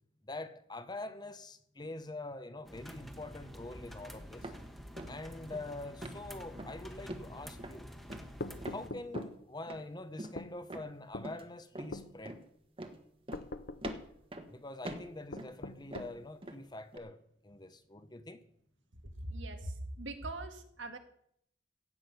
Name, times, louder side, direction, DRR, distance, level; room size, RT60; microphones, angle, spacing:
voice 1, 0.2-4.5 5.1-7.9 8.7-12.4 14.5-18.4, left 2 dB, 25° left, 1.0 m, -45 dB
sound 1, 2.6-8.9, equal, ahead, 1.4 m, -48 dB
sound 2, 4.4-4.7 5.0-5.2 5.5-5.7 6.0-6.2 6.5-6.8 7.1-7.3 7.6-7.8 8.1-8.8 9.1-9.4 9.7-9.8 10.2-10.4 10.7-10.9 11.2-11.4 11.8-12.0 12.3-12.4 12.8-13.0 13.3-13.5 13.8-14.5 14.9-15.6 15.9-16.6 16.9-17.0, right 1 dB, 30° right, 1.4 m, -44 dB
sound 3, 8.4-9.4 10.4-10.5 11.1-11.3 11.9-12.1 13.3-14.1 15.3-16.2, left 2 dB, 55° left, 0.9 m, -42 dB
voice 2, 19.2-21.0, right 2 dB, 85° right, 2.1 m, -41 dB
16.0 x 6.3 x 9.6 m
head